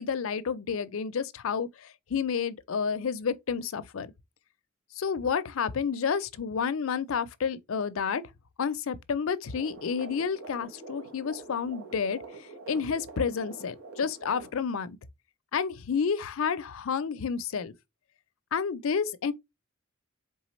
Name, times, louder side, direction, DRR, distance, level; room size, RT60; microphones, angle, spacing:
voice 1, 0.0-4.1 5.0-8.2 8.6-15.0 15.5-17.7 18.5-19.3, left 6 dB, 65° left, 0.4 m, -30 dB
sound 1, 9.5-14.5, right 3 dB, 70° right, 1.2 m, -46 dB
4.1 x 3.5 x 3.0 m
head